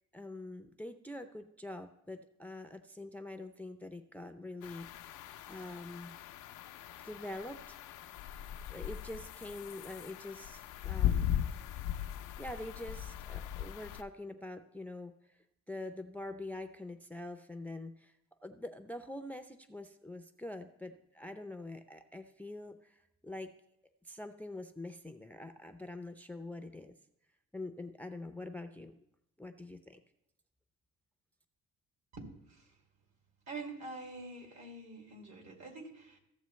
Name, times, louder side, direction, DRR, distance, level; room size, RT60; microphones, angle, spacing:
voice 1, 0.1-4.9 5.5-6.2 7.0-7.8 8.7-11.4 12.4-15.1 15.7-18.1 18.4-23.5 24.0-26.9 27.5-28.9 29.4-30.0, left 2 dB, 5° left, 7 dB, 0.5 m, -45 dB
wind in the autumn forest - rear, 4.6-14.0, left 10 dB, 85° left, 0.5 m, -38 dB
voice 2, 32.1-32.7 33.5-36.2, right 3 dB, 65° right, 2 dB, 2.5 m, -46 dB
14.5 x 7.3 x 3.1 m, 0.80 s
cardioid pair, 90°, 30 cm